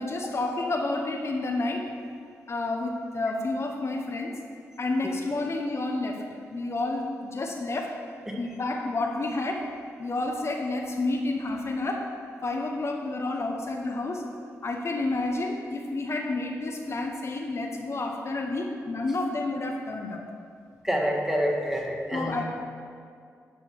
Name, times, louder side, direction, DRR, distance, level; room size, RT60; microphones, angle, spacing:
voice 1, 0.0-1.9 2.5-4.4 4.8-6.2 6.5-8.0 8.4-9.7 10.0-12.1 12.4-14.3 14.6-20.2 22.1-22.4, left 2 dB, 50° left, 2 dB, 1.0 m, -30 dB
voice 2, 20.8-22.4, equal, 5° right, 0 dB, 1.7 m, -27 dB
10.5 x 5.1 x 6.5 m, 2.2 s
cardioid pair, 60°, 6 cm